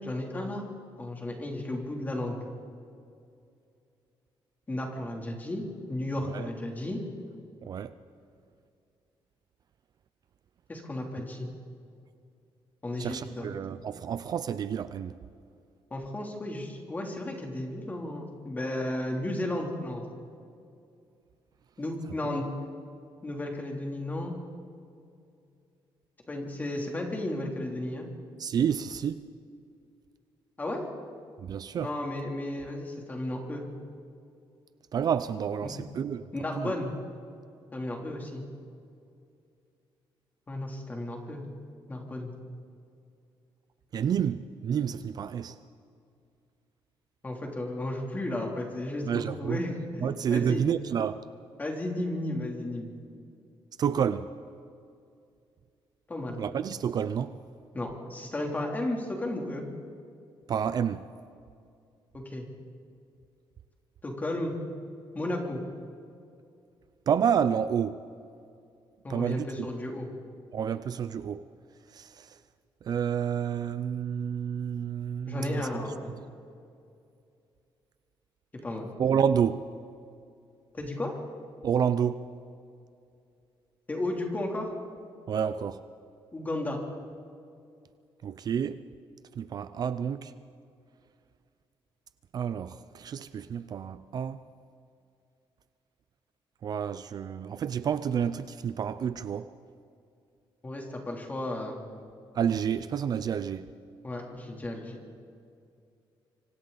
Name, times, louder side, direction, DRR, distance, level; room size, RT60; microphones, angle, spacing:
voice 1, 0.0-0.6 1.0-2.4 4.7-7.0 10.7-11.5 12.8-13.5 15.9-20.0 21.8-22.5 23.2-24.3 26.3-28.1 30.6-30.9 31.8-33.6 35.6-35.8 36.3-37.0 37.7-38.4 40.5-41.4 41.9-42.3 47.2-50.6 51.6-52.9 56.1-56.4 57.7-59.7 62.2-62.5 64.0-64.5 65.1-65.6 69.0-70.1 75.3-76.2 78.6-78.9 80.7-81.1 83.9-84.7 86.3-86.8 100.6-101.8 104.0-105.0, left 1 dB, 20° left, 3.1 m, -34 dB
voice 2, 7.6-8.0 13.0-15.2 28.4-29.2 31.4-31.9 34.9-36.2 36.6-36.7 43.9-45.6 49.1-49.6 50.0-51.3 53.8-54.3 56.4-57.4 60.5-61.1 67.1-68.0 69.1-69.7 70.5-71.4 71.9-72.3 72.8-75.7 79.0-79.6 81.6-82.2 85.3-85.8 88.2-88.8 89.4-90.3 92.3-94.4 96.6-99.5 102.3-103.7, right 8 dB, 45° right, 0.5 m, -29 dB
25.5 x 25.5 x 4.1 m
cardioid pair, 165°, 9 cm